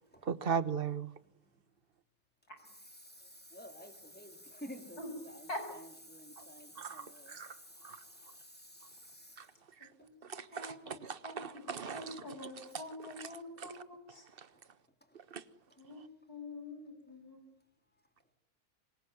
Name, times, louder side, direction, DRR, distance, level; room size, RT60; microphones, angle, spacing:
voice 1, 0.3-1.1 6.8-7.5 7.8-8.0 10.3-12.3 12.7-12.8 13.2-13.3 13.6-13.7 15.3-15.4, right 7 dB, 40° right, 1.5 m, -38 dB
voice 2, 2.6-9.4, equal, 5° left, 3.6 m, -51 dB
voice 3, 10.0-10.8 11.2-14.2 15.8-17.4, left 2 dB, 85° left, 7.8 m, -46 dB
26.5 x 22.5 x 9.5 m
omnidirectional pair, 1.6 m